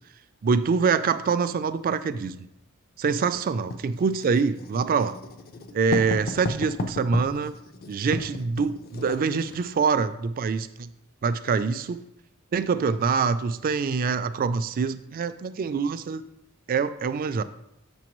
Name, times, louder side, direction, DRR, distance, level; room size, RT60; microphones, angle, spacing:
voice 1, 0.4-2.4 3.0-5.1 5.7-7.5 7.9-10.9 11.2-12.0 12.5-16.2 16.7-17.4, right 5 dB, 40° right, 12 dB, 0.3 m, -25 dB
Writing, 3.7-9.6, left 2 dB, 45° left, 0.5 m, -34 dB
7.8 x 6.1 x 3.0 m, 0.86 s
head